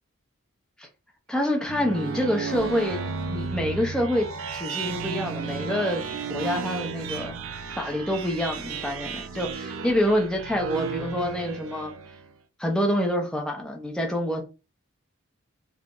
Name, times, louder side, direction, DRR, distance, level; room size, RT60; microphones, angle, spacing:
voice 1, 1.3-3.0 3.3-4.3 4.5-7.3 7.8-11.9 12.6-14.4, equal, 5° left, 0.5 m, -27 dB
sound 1, 1.4-12.3, right 5 dB, 70° right, 0.4 m, -33 dB
2.4 x 2.0 x 3.5 m
head